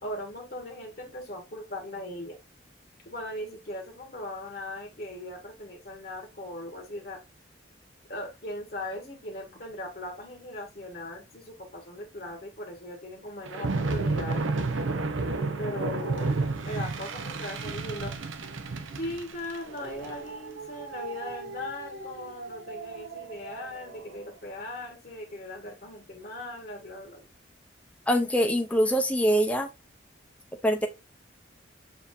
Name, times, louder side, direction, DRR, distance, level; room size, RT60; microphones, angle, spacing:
voice 1, 0.0-2.4 3.1-7.2 8.1-14.5 15.6-16.3 16.6-18.1 18.9-27.3, left 1 dB, 50° left, 1.3 m, -39 dB
sound 1, 13.5-24.0, right 3 dB, 90° right, 0.7 m, -32 dB
voice 2, 28.1-29.7 30.6-30.9, equal, 5° left, 0.6 m, -24 dB
6.9 x 2.8 x 2.5 m
head